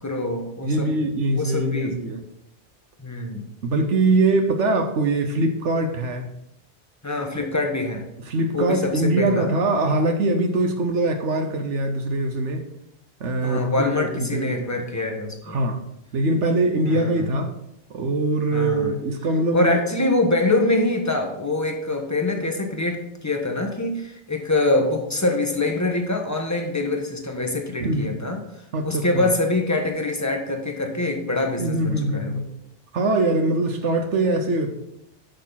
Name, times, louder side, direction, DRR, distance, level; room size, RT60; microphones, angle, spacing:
voice 1, 0.0-0.9 1.3-2.0 3.0-3.5 7.0-8.0 8.5-9.5 13.4-15.6 16.8-17.3 18.5-18.9 19.5-28.4 28.8-32.4, left 2 dB, 15° left, 2 dB, 1.4 m, -24 dB
voice 2, 0.6-2.2 3.6-6.3 7.4-7.5 8.3-12.6 13.2-14.7 15.4-15.7 16.1-17.5 17.9-19.8 27.8-28.1 28.7-29.3 31.6-32.4 32.9-34.7, right 2 dB, 80° right, 4 dB, 1.3 m, -22 dB
10.5 x 6.8 x 4.1 m, 0.80 s
omnidirectional pair, 1.2 m